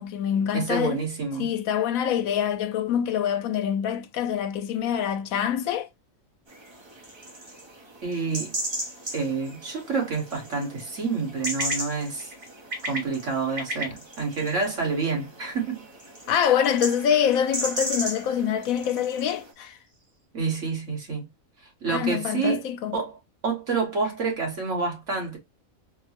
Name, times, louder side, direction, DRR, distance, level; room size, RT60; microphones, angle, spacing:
voice 1, 0.0-1.0 1.4-5.9 16.3-19.8 21.9-22.9, left 9 dB, 85° left, 1.0 m, -25 dB
voice 2, 0.5-1.5 8.0-8.5 9.1-12.3 12.8-15.8 20.3-21.3 21.8-22.7 22.9-23.2 23.4-25.4, right 4 dB, 65° right, 1.7 m, -28 dB
sound 1, 6.5-19.5, right 1 dB, 25° right, 0.6 m, -36 dB
sound 2, 9.0-20.3, equal, 40° right, 1.3 m, -42 dB
4.4 x 2.1 x 2.8 m
omnidirectional pair, 1.4 m